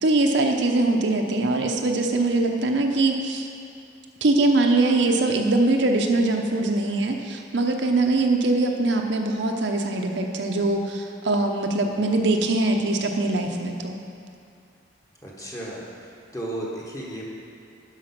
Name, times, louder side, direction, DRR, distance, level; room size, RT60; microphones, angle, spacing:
voice 1, 0.0-3.5 4.2-14.0, right 2 dB, 65° right, 3 dB, 0.7 m, -22 dB
voice 2, 15.2-15.8 16.3-17.2, right 1 dB, 15° left, -4 dB, 1.4 m, -33 dB
11.5 x 5.0 x 5.9 m, 2.5 s
head